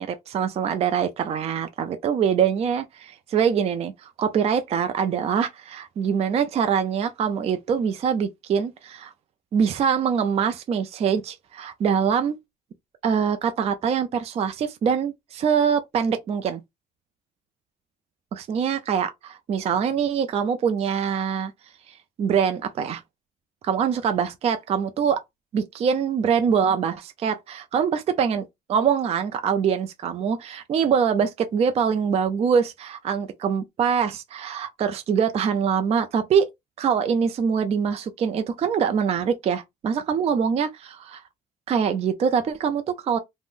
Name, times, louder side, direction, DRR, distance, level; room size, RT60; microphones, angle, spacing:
voice 1, 0.0-9.1 9.5-12.4 13.0-16.6 18.3-21.5 21.9-23.0 23.6-25.2 25.5-36.5 36.8-41.2 41.7-43.2, right 7 dB, 40° right, 0.4 m, -24 dB
2.4 x 2.0 x 3.6 m
cardioid pair, 110°, 17 cm